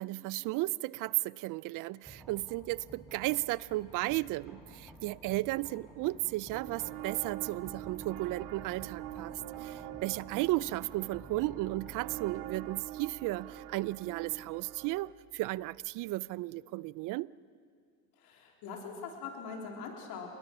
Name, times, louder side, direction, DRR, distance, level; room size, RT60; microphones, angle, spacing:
voice 1, 0.0-9.3 9.6-17.3, right 19 dB, 55° right, 0.6 m, -34 dB
sound 1, 2.0-15.9, right 3 dB, ahead, 6.4 m, -53 dB
sound 2, 6.5-15.1, right 12 dB, 70° right, 1.1 m, -45 dB
voice 2, 18.2-20.3, left 5 dB, 70° left, 3.9 m, -42 dB
28.5 x 21.0 x 6.1 m
supercardioid pair, 110°, 38 cm